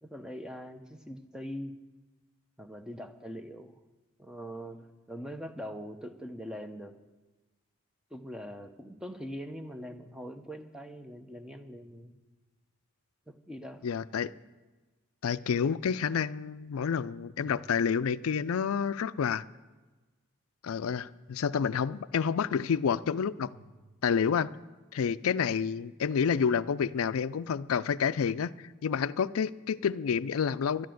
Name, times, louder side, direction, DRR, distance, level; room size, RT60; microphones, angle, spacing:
voice 1, 0.0-1.8 2.6-3.8 4.2-6.9 8.1-12.2 13.3-13.8, equal, 5° right, 8 dB, 0.6 m, -42 dB
sound 1, 11.7-12.9 17.4-19.0 23.5-24.6, right 2 dB, 70° right, 3.3 m, -60 dB
voice 2, 13.8-14.3 15.2-19.4 20.6-23.5 24.0-24.5 24.9-28.5 28.8-30.9, left 7 dB, 90° left, 15 dB, 0.4 m, -29 dB
12.0 x 10.5 x 7.7 m, 1.2 s
head